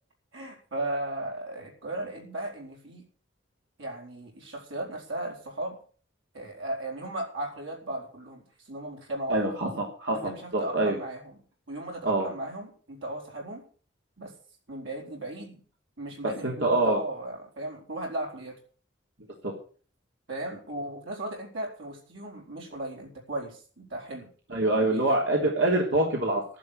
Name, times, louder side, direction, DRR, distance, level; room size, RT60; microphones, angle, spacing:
voice 1, 0.3-3.0 3.8-5.8 6.3-8.4 8.7-9.4 10.1-11.2 11.7-13.6 14.2-14.3 14.7-15.6 16.0-18.5 20.3-24.3 24.7-25.5, right 1 dB, 85° right, 0 dB, 4.6 m, -36 dB
voice 2, 9.3-10.9 12.0-12.3 16.4-17.0 19.4-19.5 24.5-26.4, right 2 dB, 70° right, 0 dB, 3.4 m, -25 dB
12.0 x 11.5 x 6.5 m, 0.42 s
head